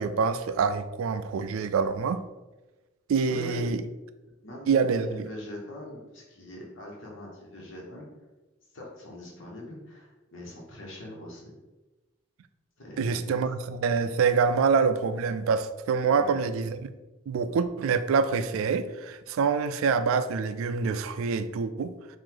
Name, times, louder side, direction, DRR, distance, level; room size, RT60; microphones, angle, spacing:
voice 1, 0.0-2.2 3.1-3.8 4.7-5.3 13.0-16.9 17.3-21.9, right 5 dB, 85° right, 11 dB, 0.3 m, -26 dB
voice 2, 3.3-3.8 4.4-4.7 5.0-8.1 8.7-11.5 12.8-13.3 16.1-16.3, left 1 dB, 70° left, -3 dB, 1.1 m, -42 dB
4.7 x 2.5 x 3.8 m, 1.1 s
head